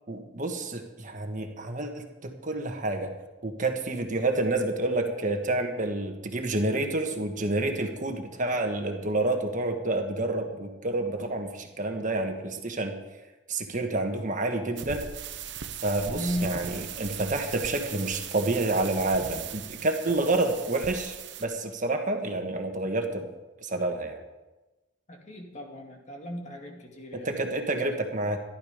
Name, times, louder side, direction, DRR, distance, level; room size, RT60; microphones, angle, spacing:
voice 1, 0.1-3.1 3.4-12.9 13.5-15.0 15.8-23.3 23.6-24.2 27.1-28.4, right 2 dB, 45° right, 4 dB, 1.5 m, -29 dB
sound 1, 14.8-21.5, right 8 dB, 65° right, 0.9 m, -39 dB
voice 2, 16.1-16.7 25.1-27.6, equal, 40° left, 1 dB, 2.2 m, -36 dB
15.0 x 12.0 x 5.1 m, 1.1 s
head